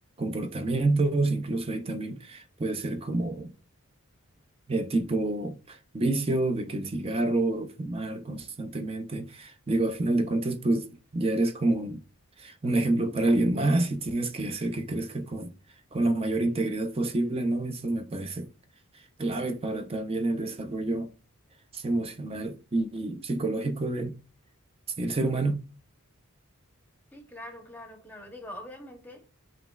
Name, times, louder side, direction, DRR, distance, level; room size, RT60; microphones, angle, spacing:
voice 1, 0.2-3.5 4.7-10.9 11.1-12.0 12.4-15.5 15.9-18.5 18.9-21.1 21.7-24.2 25.0-25.6, right 2 dB, 25° right, 0.5 m, -28 dB
voice 2, 27.1-29.3, left 1 dB, 10° left, 0.8 m, -43 dB
7.5 x 3.0 x 2.3 m
head